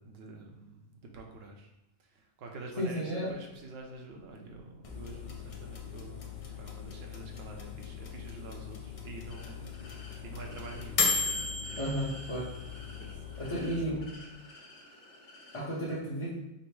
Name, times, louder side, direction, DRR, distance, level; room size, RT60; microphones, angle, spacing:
voice 1, 0.0-1.7 2.0-11.8 12.8-14.1 14.5-14.6 14.9-15.7, right 3 dB, 65° right, 2 dB, 0.9 m, -48 dB
voice 2, 2.8-3.3 11.8-12.5 13.4-14.1 15.5-16.3, equal, 30° left, -9 dB, 0.8 m, -33 dB
sound 1, 4.8-13.9, left 5 dB, 50° left, 0.4 m, -37 dB
sound 2, 9.3-15.6, left 1 dB, 85° left, 1.3 m, -53 dB
5.2 x 2.0 x 4.6 m, 0.91 s
omnidirectional pair, 1.2 m